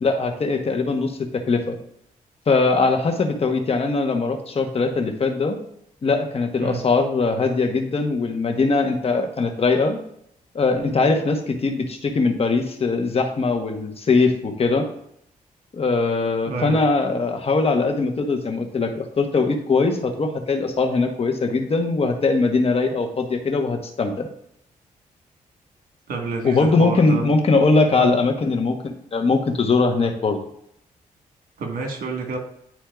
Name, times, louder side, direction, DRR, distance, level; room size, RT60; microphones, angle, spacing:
voice 1, 0.0-1.8 2.5-5.6 6.0-10.0 10.5-14.8 15.7-24.3 26.4-30.4, left 3 dB, 45° left, 4 dB, 1.0 m, -21 dB
voice 2, 16.4-16.8 26.1-27.2 28.0-28.2 31.6-32.4, right 4 dB, 80° right, 2 dB, 1.5 m, -28 dB
10.0 x 4.4 x 2.3 m, 0.71 s
cardioid pair, 95°, 14 cm